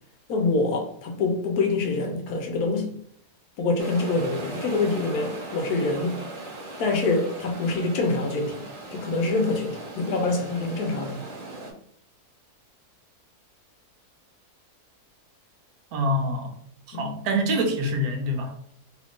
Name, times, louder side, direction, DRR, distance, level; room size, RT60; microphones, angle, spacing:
voice 1, 0.3-2.9 3.6-6.1 6.8-8.6 8.9-11.2 16.9-17.2, left 3 dB, 75° left, 1.1 m, -25 dB
sound 1, 3.8-11.7, right 2 dB, 45° right, 0.7 m, -38 dB
voice 2, 15.9-16.6 16.9-18.5, equal, 75° right, 1.1 m, -25 dB
3.1 x 2.5 x 3.5 m
omnidirectional pair, 1.7 m